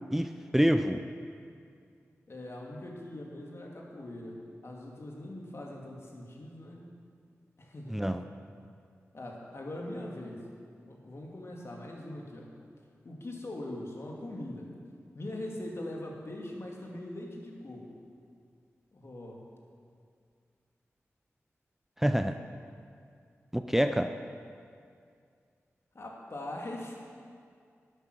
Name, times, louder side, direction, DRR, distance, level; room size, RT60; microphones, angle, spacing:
voice 1, 0.1-1.0 7.9-8.2 22.0-22.4 23.5-24.1, equal, 5° right, 8 dB, 0.5 m, -26 dB
voice 2, 2.3-6.8 7.6-8.1 9.1-10.5 10.8-12.5 13.0-14.7 15.1-17.9 18.9-19.4 25.9-27.0, left 1 dB, 55° left, -1 dB, 2.2 m, -41 dB
11.5 x 9.0 x 6.2 m, 2.3 s
wide cardioid pair, 65°, 5 cm